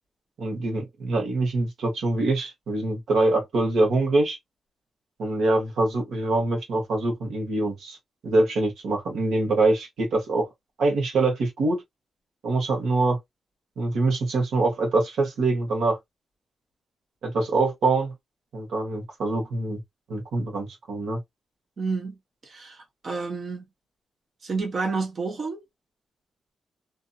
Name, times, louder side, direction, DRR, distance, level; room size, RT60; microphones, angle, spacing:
voice 1, 0.4-4.4 5.2-8.0 8.2-10.5 10.8-11.8 12.4-13.2 13.8-16.0 17.2-18.1 18.5-19.8 20.1-21.2, right 2 dB, 90° right, 1.2 m, -24 dB
voice 2, 21.8-22.2 22.4-23.6 24.4-25.6, right 4 dB, 50° right, 1.0 m, -30 dB
2.6 x 2.6 x 2.4 m
wide cardioid pair, 120°, 0 cm